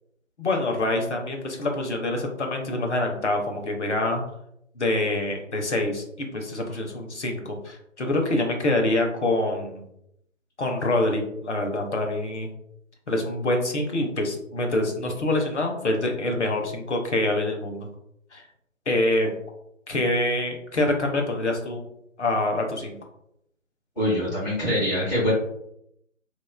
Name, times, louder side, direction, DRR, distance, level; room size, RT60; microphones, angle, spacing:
voice 1, 0.4-4.2 4.8-9.9 10.6-12.5 13.1-17.9 18.3-18.4 18.9-19.3 19.9-21.8 22.2-23.0, left 2 dB, 60° left, 3 dB, 0.6 m, -25 dB
voice 2, 23.9-25.3, equal, 35° left, -11 dB, 1.5 m, -24 dB
2.9 x 2.2 x 2.2 m, 0.76 s
figure-of-eight pair, 160°, 39 cm